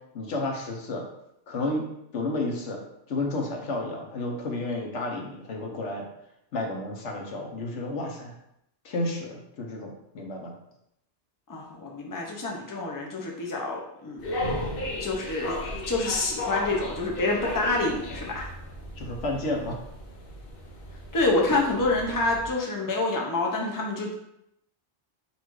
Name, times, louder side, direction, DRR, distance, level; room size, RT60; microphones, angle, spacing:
voice 1, 0.1-1.0 1.5-1.8 2.1-6.1 6.5-8.4 8.8-10.5 19.0-19.8, left 2 dB, 85° left, 1 dB, 1.2 m, -31 dB
voice 2, 11.5-14.3 15.0-15.6 15.9-18.5 21.1-24.1, left 2 dB, 20° left, -1 dB, 0.6 m, -27 dB
sound 1, 14.2-22.5, left 1 dB, 55° left, 0.9 m, -35 dB
4.3 x 2.6 x 4.6 m, 0.78 s
omnidirectional pair, 1.2 m